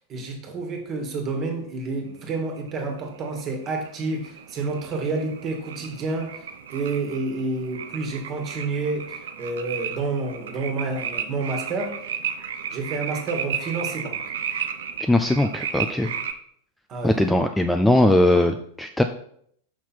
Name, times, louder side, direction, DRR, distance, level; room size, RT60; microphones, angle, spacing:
voice 1, 0.1-12.0 12.7-14.2 16.9-17.3, right 3 dB, 30° right, 4 dB, 1.6 m, -29 dB
sound 1, 2.6-16.3, right 8 dB, 60° right, 0.6 m, -34 dB
voice 2, 15.0-16.1 17.0-19.0, left 1 dB, 5° left, 6 dB, 0.4 m, -20 dB
6.0 x 5.7 x 4.3 m, 0.65 s
figure-of-eight pair, 90°, 0 cm